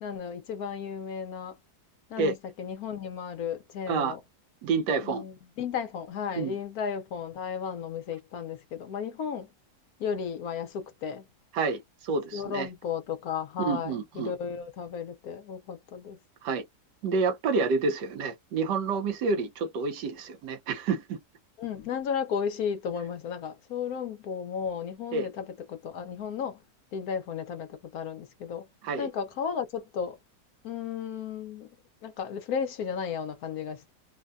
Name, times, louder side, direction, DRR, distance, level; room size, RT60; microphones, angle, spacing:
voice 1, 0.0-1.6 2.1-4.2 5.0-9.5 10.0-11.3 12.3-16.2 21.6-26.6 26.9-28.7 29.0-30.2 30.6-31.7 32.0-33.9, left 7 dB, 65° left, 1.1 m, -34 dB
voice 2, 4.6-5.2 6.4-6.5 11.5-12.7 13.6-14.3 16.4-16.6 17.0-21.2 25.1-25.3 28.8-29.1, right 4 dB, 85° right, 1.4 m, -28 dB
3.4 x 2.2 x 2.4 m
omnidirectional pair, 1.8 m